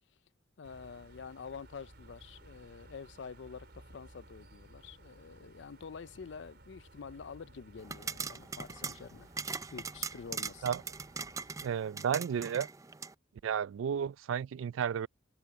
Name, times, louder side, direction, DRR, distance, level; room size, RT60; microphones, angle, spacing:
voice 1, 0.6-9.3 9.7-10.7, left 5 dB, 65° left, 0.5 m, -47 dB
sound 1, 0.6-11.7, right 1 dB, 55° right, 4.9 m, -57 dB
sound 2, 7.8-13.1, right 5 dB, 15° right, 0.4 m, -41 dB
voice 2, 11.6-12.7 13.4-15.1, right 8 dB, 80° right, 0.3 m, -32 dB
head